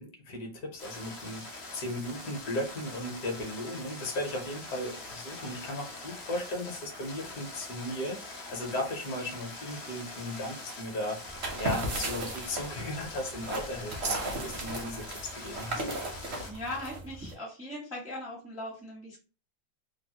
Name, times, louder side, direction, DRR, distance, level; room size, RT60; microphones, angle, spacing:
voice 1, 0.0-15.0 15.3-15.8, left 1 dB, 60° left, 1 dB, 1.1 m, -36 dB
sound 1, 0.8-16.5, left 2 dB, 75° left, 0.5 m, -44 dB
sound 2, 11.3-17.3, right 2 dB, 70° right, 0.6 m, -36 dB
voice 2, 16.5-19.2, left 1 dB, 5° right, -5 dB, 0.4 m, -39 dB
3.2 x 2.1 x 2.7 m, 0.36 s
omnidirectional pair, 2.2 m